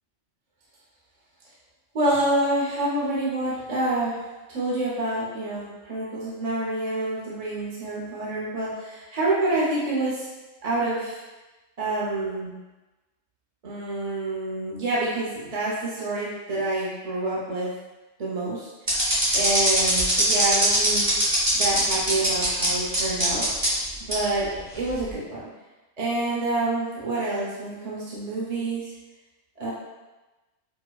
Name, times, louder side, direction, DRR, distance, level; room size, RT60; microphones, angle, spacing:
voice 1, 2.0-4.2 4.5-10.3 10.6-11.2 11.8-12.5 13.6-17.7 18.2-21.1 21.5-23.5 24.0-25.4 26.0-28.9 29.6-29.7, right 2 dB, 40° right, -6 dB, 0.6 m, -27 dB
sound 1, 18.9-22.7 22.9-23.7 24.1-24.2 24.9-25.1, right 1 dB, 20° right, 0.9 m, -21 dB
4.6 x 2.1 x 2.2 m, 1.1 s
omnidirectional pair, 1.3 m